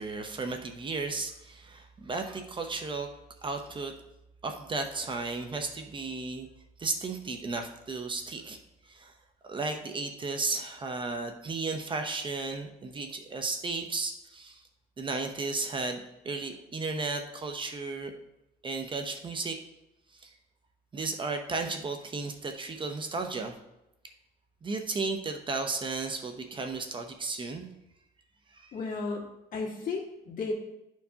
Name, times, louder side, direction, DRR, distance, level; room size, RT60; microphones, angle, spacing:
voice 1, 0.0-3.1 3.4-3.9 4.4-6.5 6.8-8.6 8.9-9.1 9.4-14.6 15.0-16.0 16.2-18.1 18.6-19.6 20.2-20.3 20.9-23.5 24.6-27.7 28.5-28.7, right 3 dB, 30° right, 5 dB, 0.7 m, -34 dB
voice 2, 28.7-30.5, left 4 dB, 55° left, -1 dB, 1.9 m, -34 dB
11.5 x 4.6 x 2.8 m, 0.88 s
cardioid pair, 110°, 17 cm